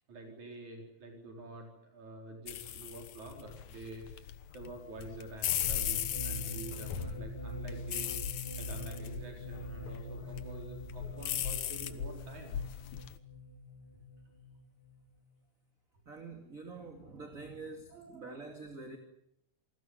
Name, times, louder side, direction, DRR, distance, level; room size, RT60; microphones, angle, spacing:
voice 1, 0.1-8.1 8.6-12.8 17.9-18.5, right 2 dB, 75° right, 2 dB, 5.6 m, -48 dB
sound 1, 2.5-13.2, left 10 dB, 75° left, 2.6 m, -38 dB
sound 2, 5.7-15.3, equal, 20° left, 2.0 m, -44 dB
voice 2, 16.1-19.0, right 3 dB, 30° right, 5 dB, 2.9 m, -46 dB
28.0 x 20.0 x 9.5 m, 0.75 s
omnidirectional pair, 3.3 m